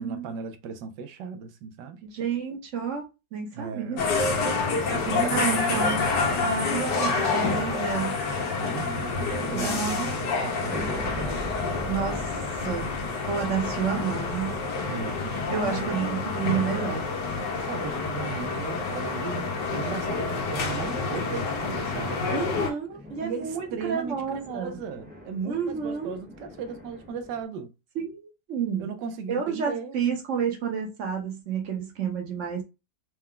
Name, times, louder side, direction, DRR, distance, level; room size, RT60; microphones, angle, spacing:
voice 1, 0.0-2.0 3.5-4.2 4.7-5.8 8.6-11.6 14.9-16.3 17.7-22.4 23.2-27.7 28.8-30.0, right 5 dB, 80° right, 1.3 m, -36 dB
voice 2, 2.1-3.0 3.3-4.0 5.1-6.1 6.4-8.2 9.5-10.1 10.6-10.7 11.8-12.9 13.3-14.6 15.5-17.0 22.3-24.8 25.5-26.1 27.9-28.9 29.3-32.6, right 7 dB, 50° right, 1.1 m, -30 dB
sound 1, 4.0-22.7, left 4 dB, 85° left, 1.6 m, -28 dB
sound 2, 10.7-17.2 22.5-27.4, equal, 5° right, 0.9 m, -42 dB
4.4 x 2.2 x 3.7 m
omnidirectional pair, 1.8 m